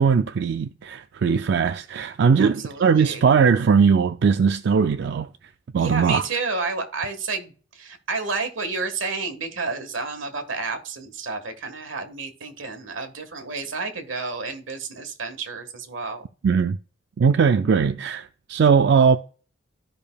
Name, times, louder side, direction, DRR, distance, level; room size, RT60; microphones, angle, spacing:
voice 1, 0.0-6.2 16.4-16.8 17.2-19.2, right 6 dB, 60° right, 0.3 m, -20 dB
voice 2, 2.4-3.2 5.8-16.2, right 4 dB, 85° right, 1.5 m, -30 dB
14.0 x 5.1 x 2.2 m
head